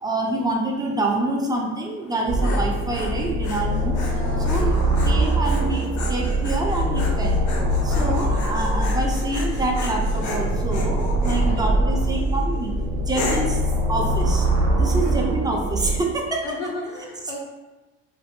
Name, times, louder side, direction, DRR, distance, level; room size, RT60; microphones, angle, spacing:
voice 1, 0.0-4.0 4.4-4.7 5.0-7.4 7.8-13.6 13.9-14.5 14.8-16.6, right 2 dB, 10° right, 0 dB, 0.4 m, -26 dB
Dog, 2.0-11.5 12.0-12.4 13.1-13.6, left 3 dB, 55° left, 0.6 m, -35 dB
sound 1, 2.3-16.0, right 1 dB, 45° right, 0.7 m, -23 dB
voice 2, 4.1-4.9 7.9-8.4 11.2-11.7 14.9-15.4 16.4-17.4, left 1 dB, 90° left, 0 dB, 0.8 m, -35 dB
2.6 x 2.5 x 2.6 m, 1.1 s
supercardioid pair, 105°, 36 cm